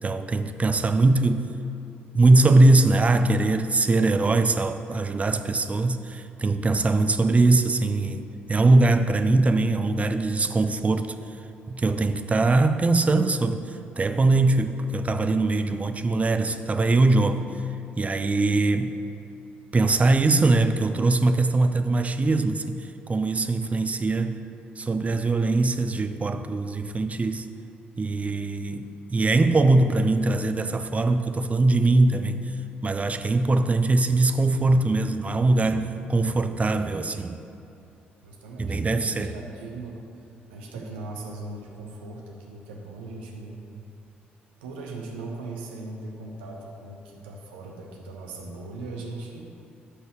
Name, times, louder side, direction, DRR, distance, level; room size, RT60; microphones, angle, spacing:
voice 1, 0.0-1.5 2.1-11.1 11.7-13.7 14.0-17.5 18.0-19.0 19.7-22.8 23.1-24.4 24.8-27.5 28.0-32.4 32.8-37.4 38.6-39.3, right 2 dB, 25° right, 9 dB, 0.5 m, -21 dB
voice 2, 36.5-37.2 38.2-40.1 40.5-43.6 44.6-49.5, right 2 dB, 75° right, 0 dB, 0.9 m, -39 dB
14.0 x 5.5 x 3.0 m, 2.7 s
figure-of-eight pair, 45°, 6 cm